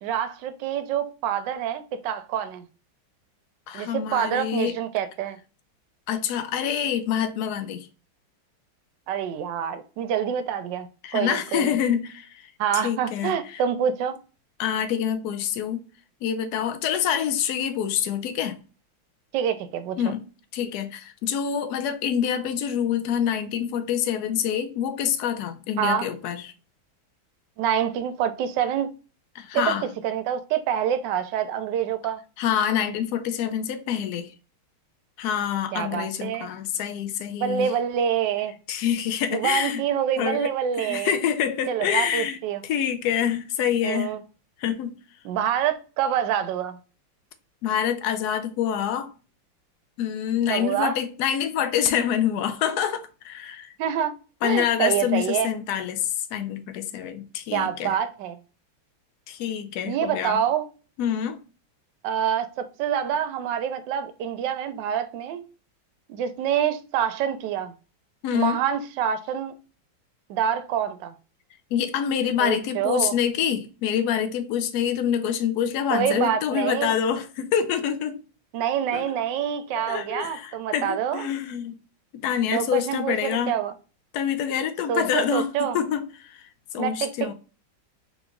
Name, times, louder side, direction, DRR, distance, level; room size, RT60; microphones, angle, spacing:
voice 1, 0.0-2.6 3.7-5.4 9.1-10.9 11.1-11.8 12.6-14.2 19.3-20.0 25.8-26.1 27.6-28.9 29.5-32.2 35.7-36.5 37.4-38.5 39.3-41.1 41.7-42.6 43.8-44.2 45.2-46.8 50.5-51.0 53.8-54.1 54.4-55.5 57.5-58.4 59.8-60.6 62.0-65.4 66.1-67.7 68.3-69.5 70.3-71.1 72.4-73.1 75.9-77.0 78.5-81.3 82.5-83.7 84.9-85.8 86.8-87.1, right 9 dB, 75° right, 1.1 m, -26 dB
voice 2, 3.7-4.8 6.1-7.9 11.0-13.6 14.6-15.8 16.2-18.6 20.0-20.2 20.5-26.5 29.3-29.9 32.4-34.3 35.2-37.7 38.7-39.8 40.2-42.4 42.6-44.1 44.6-45.0 47.6-49.1 50.0-53.7 54.4-58.0 59.3-60.4 61.0-61.4 68.2-68.6 71.7-78.2 78.9-79.1 79.8-81.7 82.1-83.5 84.1-86.4 86.7-87.3, left 9 dB, 75° left, 0.9 m, -26 dB
3.5 x 3.0 x 3.7 m
omnidirectional pair, 2.2 m